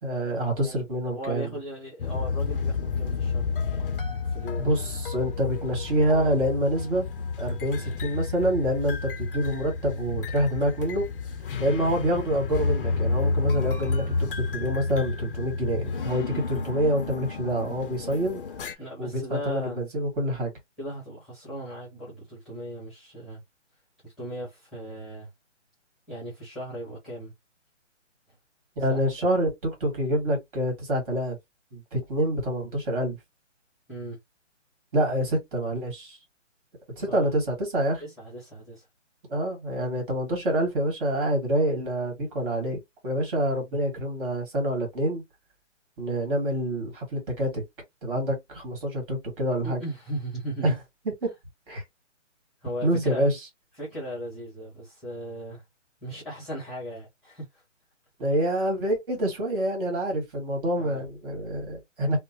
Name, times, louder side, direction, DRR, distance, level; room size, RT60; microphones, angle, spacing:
voice 1, 0.0-1.5 4.6-7.1 7.4-11.0 11.6-18.4 19.0-20.5 28.8-31.4 31.7-33.2 34.9-36.2 37.0-38.0 39.3-45.2 46.0-47.6 48.0-49.8 50.6-50.7 51.2-51.3 51.7-51.8 52.8-53.4 58.2-62.2, equal, 45° right, 1.9 m, -27 dB
voice 2, 0.6-3.5 4.2-4.8 18.8-19.8 20.8-23.4 24.0-25.3 26.1-27.3 28.9-29.0 33.9-34.2 37.0-37.3 38.0-38.8 49.6-50.7 52.6-53.3 53.8-55.6 56.0-57.6 60.8-61.0, equal, ahead, 1.0 m, -37 dB
sound 1, 2.0-18.7, left 4 dB, 45° left, 0.5 m, -30 dB
3.1 x 2.1 x 2.8 m
hypercardioid pair, 155°, 37 cm